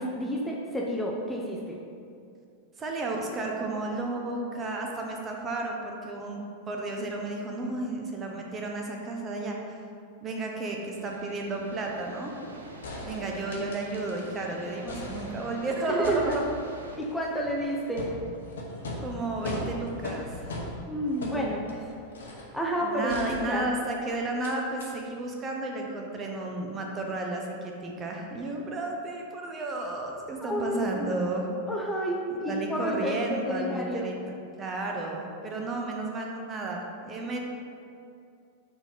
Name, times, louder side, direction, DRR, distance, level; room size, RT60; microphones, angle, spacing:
voice 1, 0.0-1.8 15.9-16.4 17.0-18.1 20.9-21.9 22.5-23.7 30.4-30.9 31.7-34.1, equal, 5° left, -3 dB, 0.6 m, -30 dB
voice 2, 2.8-9.8 10.2-12.3 13.0-16.4 19.0-20.5 22.8-31.5 32.5-34.2 34.6-37.4, right 2 dB, 25° right, 1 dB, 0.8 m, -32 dB
sound 1, 10.6-17.0, right 2 dB, 75° right, 0.7 m, -45 dB
sound 2, 12.8-14.4 14.7-15.6 16.0-22.6 23.1-23.9 24.4-24.5 24.8-24.9, left 2 dB, 65° left, 0.9 m, -39 dB
4.5 x 4.4 x 5.1 m, 2.4 s
figure-of-eight pair, 90°, 0 cm